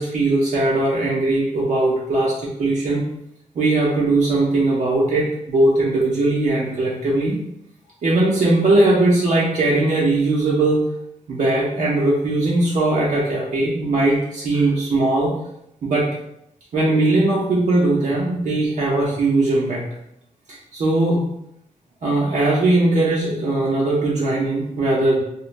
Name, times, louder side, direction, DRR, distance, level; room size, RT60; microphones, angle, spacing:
voice 1, 0.0-3.0 3.5-7.4 8.0-10.8 11.3-15.3 15.8-16.1 16.7-19.8 20.7-21.3 22.0-25.2, right 2 dB, 70° right, -5 dB, 0.8 m, -19 dB
4.3 x 2.1 x 2.6 m, 0.79 s
wide cardioid pair, 155°, 13 cm